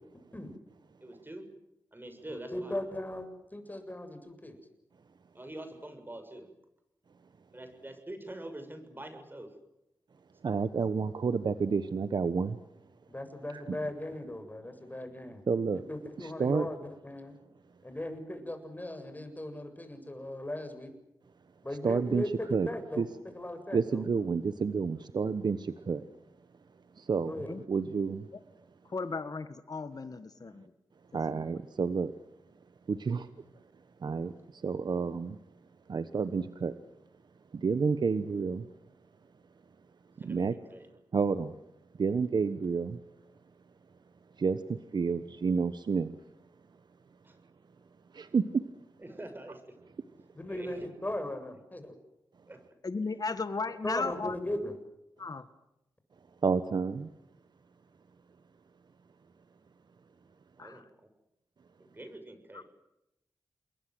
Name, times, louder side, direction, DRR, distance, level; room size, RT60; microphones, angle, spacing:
voice 1, 1.0-1.5 1.9-2.8 5.3-6.5 7.5-9.5 40.2-40.9 47.2-47.4 49.0-49.8 50.5-50.9 52.5-52.6 60.6-61.1 61.8-62.7, right 1 dB, 25° right, 7 dB, 7.0 m, -45 dB
voice 2, 2.3-3.3 3.5-4.6 13.1-15.4 15.9-17.3 17.8-20.9 21.6-23.1 23.3-24.1 27.2-27.5 50.3-52.0 53.8-54.7, left 1 dB, 20° left, 7 dB, 7.3 m, -38 dB
voice 3, 10.4-12.6 13.5-13.8 15.5-15.8 16.2-16.7 21.8-22.2 22.5-22.7 23.0-23.1 23.7-26.0 27.0-27.3 27.7-28.3 31.1-32.1 32.9-33.3 34.0-35.4 35.9-36.8 37.5-38.7 40.2-40.5 41.1-41.5 42.0-43.0 44.4-46.1 48.1-48.6 56.4-57.1, right 5 dB, 65° right, 12 dB, 1.2 m, -30 dB
voice 4, 28.9-30.6 31.3-31.4 52.8-54.3 55.2-55.4 60.6-60.8 62.5-62.6, left 4 dB, 50° left, 11 dB, 1.8 m, -35 dB
28.5 x 21.5 x 7.9 m, 0.87 s
cardioid pair, 45°, 8 cm